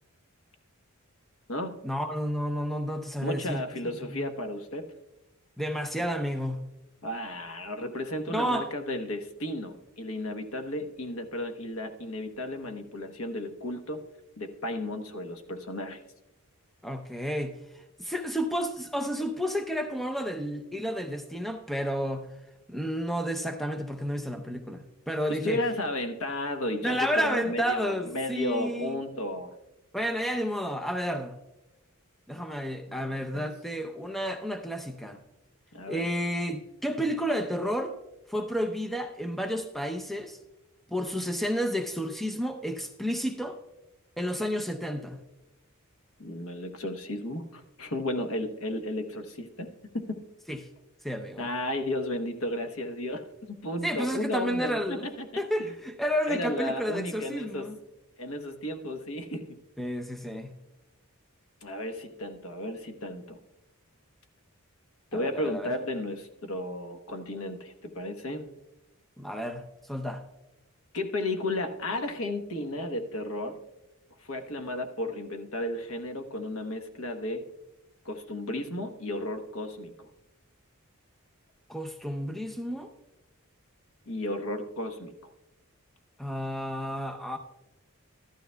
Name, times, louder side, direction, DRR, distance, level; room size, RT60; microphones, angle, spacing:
voice 1, 1.8-3.6 4.0-4.3 5.6-6.7 8.3-8.7 16.8-22.3 22.7-25.6 26.8-29.0 29.9-31.4 32.3-35.2 35.9-37.9 38.3-40.4 40.9-43.6 44.2-45.2 50.5-50.6 51.0-51.5 53.8-55.1 55.4-57.8 59.8-60.5 65.1-65.7 69.2-70.2 81.7-82.9 86.2-87.4, equal, ahead, 5 dB, 0.5 m, -31 dB
voice 2, 3.2-4.9 7.0-14.0 14.4-16.0 25.3-29.6 32.9-33.4 35.7-36.1 46.2-49.7 49.9-50.2 51.4-55.4 56.3-57.7 58.2-59.6 61.6-63.4 65.1-68.5 70.9-73.6 74.2-77.4 78.0-80.1 84.1-85.1, left 1 dB, 75° left, 6 dB, 1.1 m, -33 dB
14.0 x 12.0 x 2.2 m, 0.95 s
head